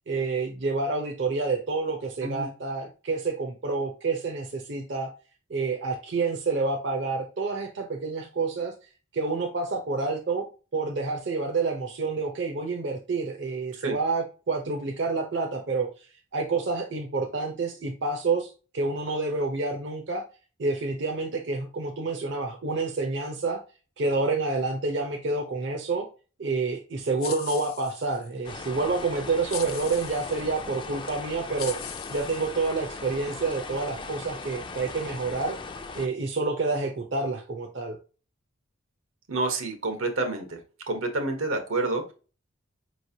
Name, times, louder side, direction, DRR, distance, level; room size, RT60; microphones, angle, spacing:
voice 1, 0.1-5.1 5.5-8.7 9.1-10.5 10.7-15.9 16.3-20.2 20.6-23.6 24.0-26.1 26.4-31.8 32.1-35.6 36.0-38.0, right 3 dB, 55° right, 3 dB, 0.6 m, -28 dB
sound 1, 27.2-28.3 29.5-30.4 31.1-31.2 31.6-33.0, left 10 dB, 90° left, 0.6 m, -40 dB
sound 2, 28.4-36.1, left 4 dB, 20° left, 0.3 m, -39 dB
voice 2, 39.3-40.6 40.9-42.1, right 2 dB, 85° right, 5 dB, 1.1 m, -28 dB
5.0 x 3.1 x 2.7 m, 0.35 s
head